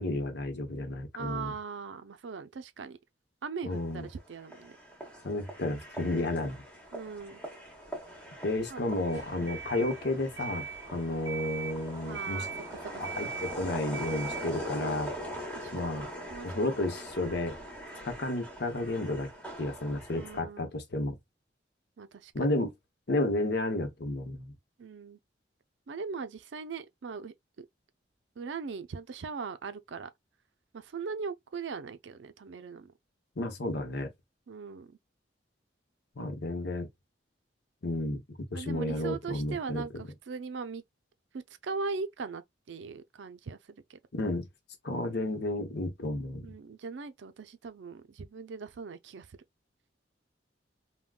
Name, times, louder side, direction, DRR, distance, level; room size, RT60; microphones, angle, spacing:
voice 1, 0.0-1.5 3.6-4.1 5.2-6.6 8.4-12.5 13.2-15.1 15.7-16.1 16.4-17.6 18.0-19.3 19.6-21.2 22.3-22.7 23.1-24.5 33.4-34.1 36.2-36.9 37.8-40.0 44.1-44.5 44.8-46.5, left 2 dB, 60° left, 0.8 m, -32 dB
voice 2, 1.1-3.0 3.4-4.8 6.9-7.4 8.7-8.8 9.4-9.6 12.1-13.3 15.5-16.0 16.3-16.5 16.8-16.9 20.1-20.7 22.0-22.5 24.8-25.2 25.9-27.7 28.4-30.1 30.7-32.9 34.5-34.9 38.5-40.8 41.3-44.0 46.4-49.4, right 5 dB, 70° right, 0.4 m, -40 dB
sound 1, 3.7-20.4, equal, 5° left, 1.0 m, -42 dB
sound 2, 9.1-14.8, right 6 dB, 20° right, 1.0 m, -41 dB
3.6 x 2.2 x 2.3 m
head